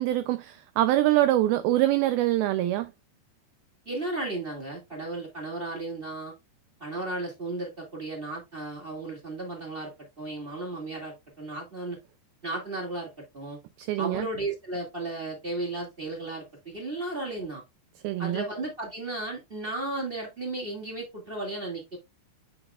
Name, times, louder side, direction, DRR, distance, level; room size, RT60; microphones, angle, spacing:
voice 1, 0.0-2.9 13.8-14.3 18.0-18.4, right 14 dB, 90° right, 2.1 m, -24 dB
voice 2, 3.8-6.3 6.8-9.9 10.2-12.0 12.4-13.6 14.0-17.6 18.2-22.0, right 2 dB, 25° right, 1.2 m, -34 dB
8.6 x 5.8 x 2.4 m
omnidirectional pair, 4.9 m